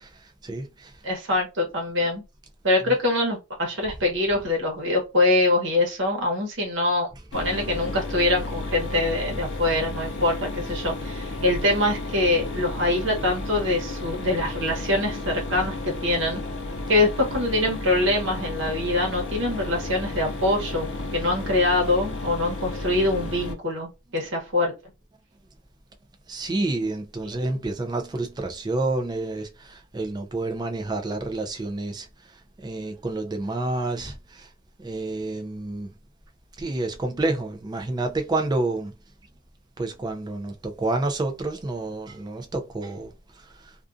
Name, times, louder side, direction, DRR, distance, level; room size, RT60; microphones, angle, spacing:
voice 1, 0.0-1.0 2.8-2.9 26.3-34.5 34.8-35.9 36.6-38.9 39.8-43.8, right 2 dB, 20° right, 0.4 m, -29 dB
voice 2, 1.0-2.2 2.6-16.4 16.9-24.7, left 2 dB, 65° right, 1.0 m, -24 dB
Mechanisms, 7.3-23.5, left 2 dB, 60° left, 0.5 m, -33 dB
2.4 x 2.3 x 2.5 m
head